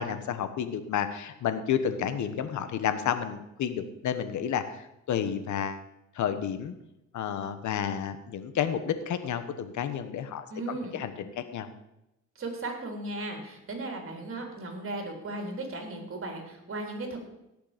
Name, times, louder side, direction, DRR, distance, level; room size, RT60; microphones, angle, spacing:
voice 1, 0.0-5.8 6.1-6.7 7.1-11.7, left 8 dB, 70° left, 10 dB, 1.3 m, -31 dB
voice 2, 10.5-11.0 12.4-17.2, right 2 dB, 45° right, 2 dB, 3.7 m, -36 dB
17.5 x 6.9 x 5.1 m, 0.89 s
cardioid pair, 90°, 30 cm